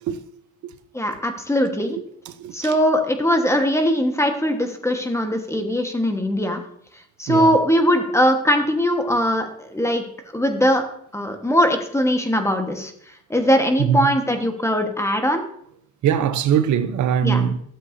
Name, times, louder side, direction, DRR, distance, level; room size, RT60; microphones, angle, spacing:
voice 1, 0.9-2.0 2.5-6.6 7.2-10.0 10.3-10.8 11.1-12.9 13.3-15.4 17.2-17.4, equal, 10° left, 1.3 m, -20 dB
voice 2, 2.4-2.8 7.3-7.5 13.8-14.1 16.0-17.6, right 8 dB, 75° right, 0.7 m, -21 dB
12.5 x 7.5 x 2.7 m
cardioid pair, 90°, 30 cm